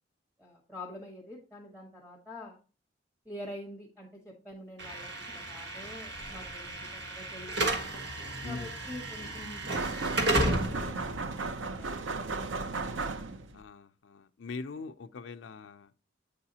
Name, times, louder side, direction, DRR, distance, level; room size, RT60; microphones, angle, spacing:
voice 1, 0.4-2.6 3.2-7.7 8.4-9.6 10.3-12.0, left 1 dB, 5° right, 1.5 m, -46 dB
Slam / Alarm, 4.8-12.9, right 1 dB, 65° right, 1.5 m, -34 dB
voice 2, 8.4-8.7 13.5-15.9, left 4 dB, 80° left, 0.5 m, -42 dB
sound 1, 9.7-13.6, right 3 dB, 90° right, 0.7 m, -35 dB
8.6 x 4.8 x 2.8 m
head